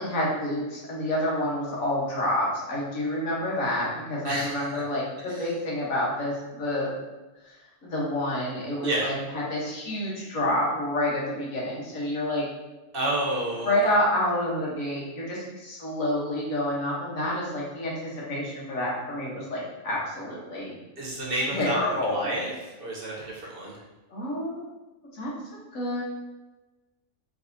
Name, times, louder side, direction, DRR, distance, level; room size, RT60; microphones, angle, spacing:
voice 1, 0.0-6.9 7.4-7.5 7.8-12.4 13.6-20.8 21.5-22.3 24.1-24.6 25.1-25.3 25.7-26.1, left 1 dB, 85° left, -5 dB, 1.6 m, -28 dB
voice 2, 4.2-4.8 5.3-5.4 8.8-9.1 12.9-13.7 21.0-22.5 22.8-23.8, right 1 dB, 50° right, -3 dB, 1.0 m, -30 dB
4.7 x 3.3 x 2.7 m, 1.1 s
omnidirectional pair, 1.4 m